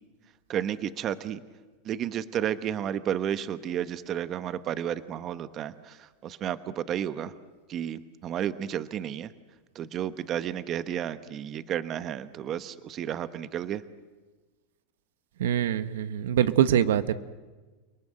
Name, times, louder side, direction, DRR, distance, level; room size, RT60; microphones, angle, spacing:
voice 1, 0.5-1.4 1.8-7.3 7.7-9.3 9.7-13.8, right 10 dB, 35° right, 13 dB, 1.1 m, -32 dB
voice 2, 15.4-17.1, right 10 dB, 85° right, 13 dB, 1.1 m, -24 dB
29.5 x 19.0 x 9.0 m, 1.3 s
supercardioid pair, 135°, 0 cm